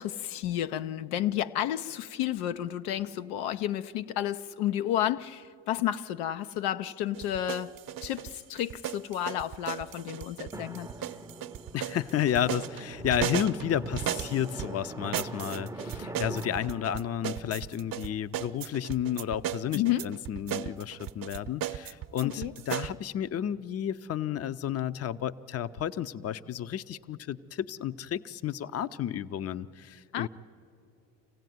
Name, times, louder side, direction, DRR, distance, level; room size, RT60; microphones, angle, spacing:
voice 1, 0.0-7.7 8.0-10.9 19.7-20.1 22.2-22.5 30.1-30.3, left 12 dB, 80° left, 11 dB, 0.7 m, -31 dB
sound 1, 7.1-14.7 15.1-22.9, right 12 dB, 50° right, 0.8 m, -36 dB
Drum, 10.5-18.8, right 1 dB, 5° right, 0.6 m, -43 dB
voice 2, 11.7-30.3, left 10 dB, 35° left, 15 dB, 0.6 m, -32 dB
25.5 x 16.0 x 9.3 m, 2.6 s
hypercardioid pair, 70°, 46 cm